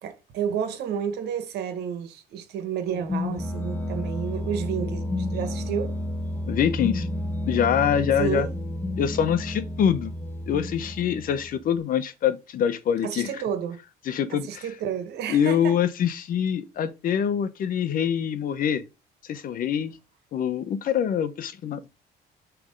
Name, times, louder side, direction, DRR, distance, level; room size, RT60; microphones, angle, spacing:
voice 1, 0.0-5.9 8.2-8.5 13.0-13.8 14.3-15.8, right 8 dB, 75° right, 1.6 m, -31 dB
sound 1, 2.9-11.7, left 1 dB, 10° left, 0.9 m, -31 dB
voice 2, 6.5-7.1 7.5-8.5 9.0-10.1 10.5-13.3 14.1-14.7 15.3-18.8 19.2-19.9 20.3-21.9, left 8 dB, 55° left, 1.0 m, -25 dB
7.2 x 3.5 x 5.2 m
cardioid pair, 110°, 17 cm